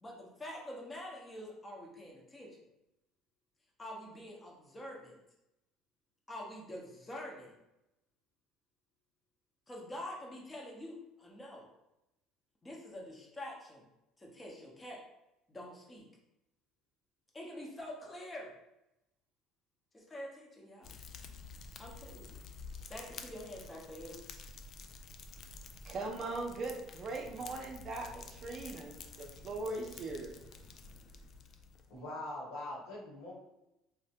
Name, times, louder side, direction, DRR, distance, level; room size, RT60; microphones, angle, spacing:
voice 1, 0.0-2.6 3.8-5.2 6.3-7.6 9.7-11.7 12.6-13.8 14.2-15.0 15.5-16.0 17.3-18.5 19.9-21.0 21.8-22.4 22.9-24.2, left 1 dB, 20° left, -2 dB, 0.8 m, -46 dB
Fire, 20.8-32.0, left 4 dB, 50° left, 0.3 m, -50 dB
voice 2, 25.8-30.5, right 2 dB, 45° right, 2 dB, 0.5 m, -40 dB
voice 3, 31.9-33.3, left 1 dB, 80° left, -5 dB, 1.2 m, -42 dB
3.1 x 2.1 x 2.8 m, 0.90 s
supercardioid pair, 95°, 0 cm